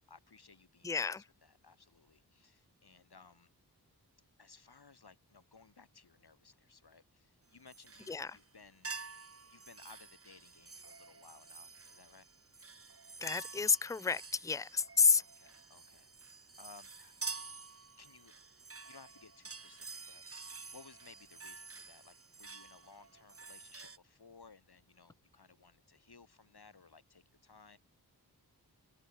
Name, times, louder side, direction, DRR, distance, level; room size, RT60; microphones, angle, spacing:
voice 1, 0.1-3.5 4.4-9.0 9.5-12.3 15.2-17.1 18.0-18.3 18.9-27.8, left 4 dB, 70° left, 6.4 m, -60 dB
voice 2, 0.8-1.2 8.1-8.4 13.2-15.2, left 5 dB, 10° left, 0.4 m, -30 dB
sound 1, 7.7-8.5 8.8-24.0, right 4 dB, 35° right, 1.2 m, -49 dB
open air
wide cardioid pair, 55°, 40 cm